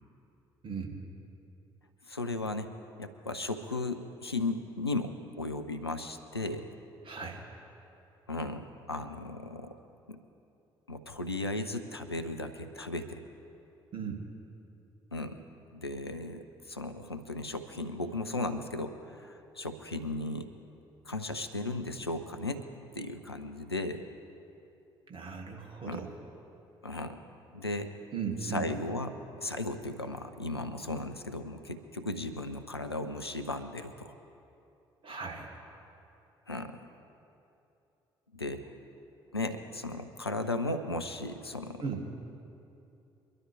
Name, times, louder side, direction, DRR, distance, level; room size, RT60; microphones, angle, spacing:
voice 1, 0.6-1.2 7.0-7.4 13.9-14.3 25.1-26.1 28.1-28.7 35.0-35.5 41.8-42.1, right 6 dB, 40° right, 0 dB, 2.3 m, -37 dB
voice 2, 2.1-2.7 3.0-6.7 8.3-9.8 10.1-10.2 10.9-13.2 15.1-15.4 15.7-20.5 21.1-22.6 22.9-24.0 25.8-26.0 26.8-27.2 27.5-27.9 28.5-29.1 29.4-34.1 36.5-36.8 38.3-38.7 39.3-41.8, left 2 dB, 90° left, 7 dB, 0.5 m, -36 dB
23.0 x 12.0 x 3.4 m, 2.8 s
figure-of-eight pair, 45°, 13 cm